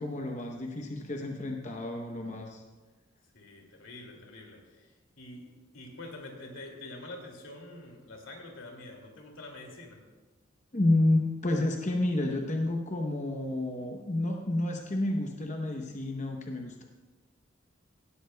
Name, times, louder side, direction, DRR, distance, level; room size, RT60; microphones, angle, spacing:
voice 1, 0.0-2.6 10.7-16.8, left 1 dB, 35° left, 2 dB, 0.8 m, -30 dB
voice 2, 3.3-10.0, left 2 dB, 85° left, 1 dB, 2.5 m, -46 dB
18.0 x 13.0 x 2.3 m, 1.3 s
head